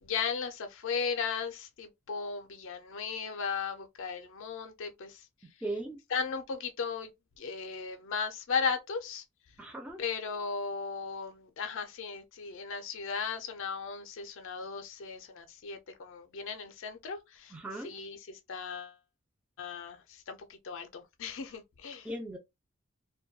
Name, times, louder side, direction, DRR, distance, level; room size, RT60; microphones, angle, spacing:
voice 1, 0.0-5.2 6.1-7.1 7.4-9.2 10.0-18.9 19.6-22.1, left 5 dB, 65° left, 0.4 m, -36 dB
voice 2, 5.6-6.0 9.6-10.0 17.5-17.9 22.0-22.4, right 1 dB, 5° right, 0.4 m, -37 dB
2.2 x 2.2 x 2.6 m
head